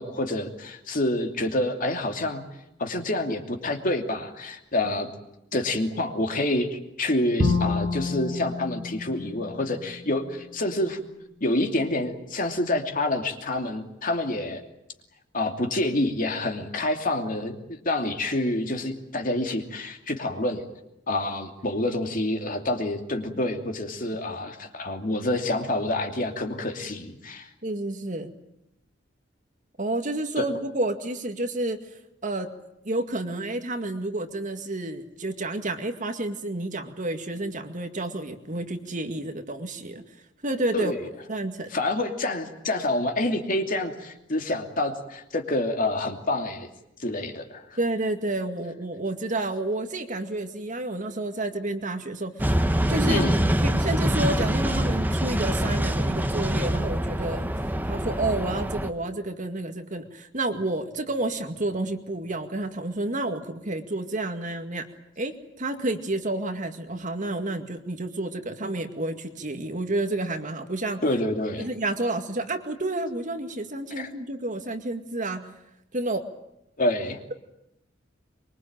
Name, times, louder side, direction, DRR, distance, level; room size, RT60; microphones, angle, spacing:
voice 1, 0.0-2.4 2.8-5.1 5.5-11.0 11.4-14.6 15.3-20.6 21.1-27.5 30.4-30.5 40.7-41.0 41.7-46.7 47.0-47.8 53.1-53.3 71.0-71.7 74.0-74.1 76.8-77.2, left 1 dB, 45° left, 5 dB, 2.8 m, -27 dB
Bowed string instrument, 7.4-10.5, left 3 dB, 80° right, 7.9 m, -29 dB
voice 2, 27.6-28.3 29.8-31.8 32.2-32.5 32.8-40.0 40.4-40.9 41.3-41.7 47.8-52.6 52.9-53.2 53.6-57.5 57.9-64.9 65.2-71.0 71.6-75.5 75.9-76.3, right 2 dB, 40° right, 6 dB, 2.1 m, -30 dB
sound 1, 52.4-58.9, equal, 10° right, 1.2 m, -25 dB
24.5 x 23.0 x 8.9 m, 0.84 s
head